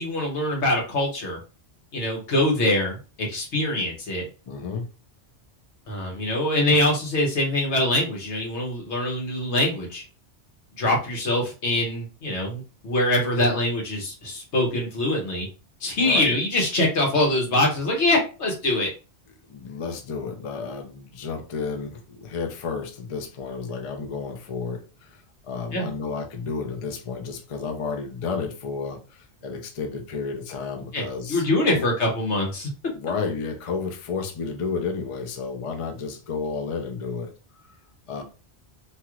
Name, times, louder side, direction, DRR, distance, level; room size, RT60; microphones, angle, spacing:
voice 1, 0.0-1.4 1.9-4.2 5.9-10.0 10.8-15.5 15.8-18.9 25.7-25.8 30.9-31.0 31.3-32.7, left 1 dB, 80° left, 0 dB, 1.3 m, -24 dB
voice 2, 4.5-4.8 16.0-16.3 19.5-31.8 32.9-37.3 38.1-38.2, left 5 dB, 45° left, 4 dB, 0.5 m, -31 dB
2.9 x 2.4 x 3.0 m, 0.34 s
omnidirectional pair, 1.1 m